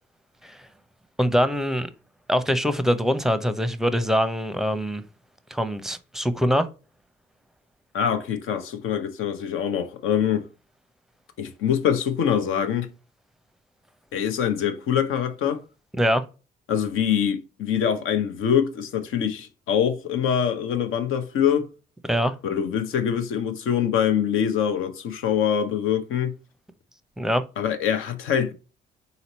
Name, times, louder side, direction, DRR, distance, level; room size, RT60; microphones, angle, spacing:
voice 1, 1.2-1.9 2.3-5.0 5.5-6.7 16.0-16.2 22.1-22.4 27.2-27.4, equal, ahead, 0.7 m, -23 dB
voice 2, 7.9-10.4 11.4-12.9 14.1-15.6 16.7-21.7 22.4-26.4 27.6-28.5, left 8 dB, 75° left, 0.8 m, -24 dB
4.0 x 2.9 x 4.1 m
supercardioid pair, 55°, 21 cm